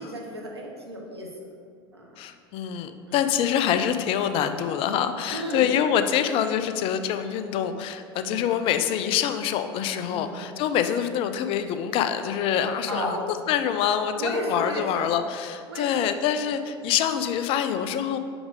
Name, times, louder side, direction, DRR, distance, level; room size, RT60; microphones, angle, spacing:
voice 1, 0.0-1.5 1.9-2.2 3.1-3.3 5.3-5.7 8.2-8.4 10.0-10.4 12.9-13.2 14.2-15.1 15.7-16.1, equal, 90° right, 0 dB, 0.9 m, -33 dB
voice 2, 2.2-18.2, left 9 dB, 45° left, 9 dB, 0.4 m, -25 dB
6.0 x 5.0 x 3.6 m, 2.1 s
figure-of-eight pair, 75°, 13 cm